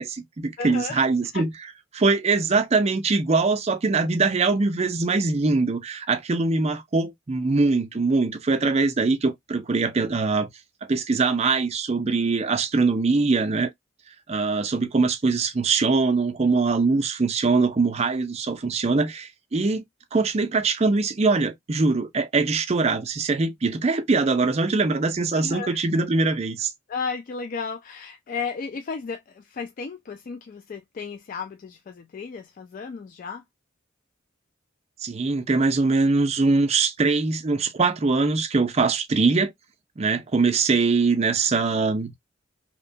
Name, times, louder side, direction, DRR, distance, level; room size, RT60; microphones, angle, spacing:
voice 1, 0.0-1.5 1.9-10.5 10.9-13.7 14.3-19.8 20.1-26.7 35.0-39.5 40.0-42.1, right 3 dB, 35° right, 0.4 m, -22 dB
voice 2, 0.6-1.1 1.3-1.5 25.3-25.8 26.9-33.4, left 5 dB, 45° left, 0.3 m, -34 dB
2.8 x 2.2 x 2.6 m
head